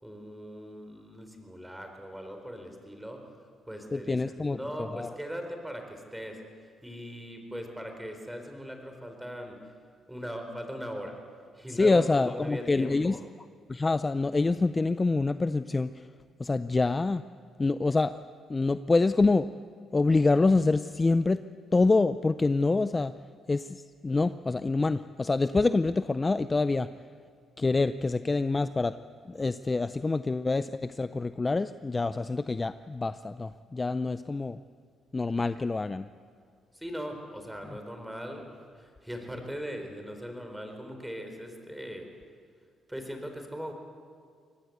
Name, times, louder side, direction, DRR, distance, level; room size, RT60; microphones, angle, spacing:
voice 1, 0.0-3.2 3.7-6.4 6.8-9.6 10.1-11.2 11.5-13.2 36.7-42.1 42.9-43.7, equal, 5° right, 4 dB, 4.3 m, -40 dB
voice 2, 3.9-5.1 11.7-13.2 13.7-16.1 16.4-17.2 17.6-18.1 18.5-19.5 19.9-21.4 21.7-23.1 23.5-26.9 27.6-29.0 29.3-34.6 35.1-36.1, left 3 dB, 25° left, 12 dB, 0.5 m, -26 dB
24.5 x 19.0 x 8.1 m, 2.1 s
cardioid pair, 90°, 0 cm